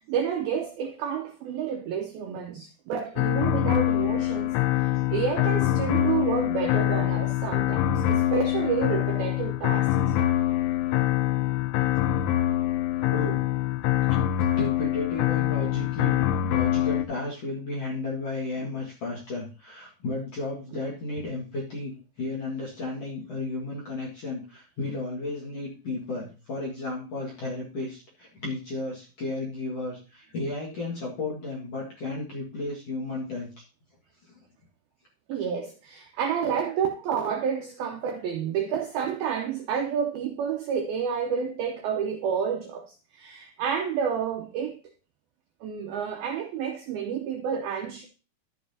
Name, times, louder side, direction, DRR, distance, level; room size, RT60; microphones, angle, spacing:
voice 1, 0.0-4.6 4.8-9.9 18.6-18.7 35.3-44.8 45.6-48.1, right 7 dB, 90° right, 2.1 m, -30 dB
sound 1, 3.2-17.1, left 13 dB, 90° left, 3.1 m, -24 dB
voice 2, 13.1-13.4 14.4-33.6 34.3-34.4, left 2 dB, 50° left, 1.9 m, -33 dB
12.0 x 7.5 x 2.8 m
omnidirectional pair, 5.4 m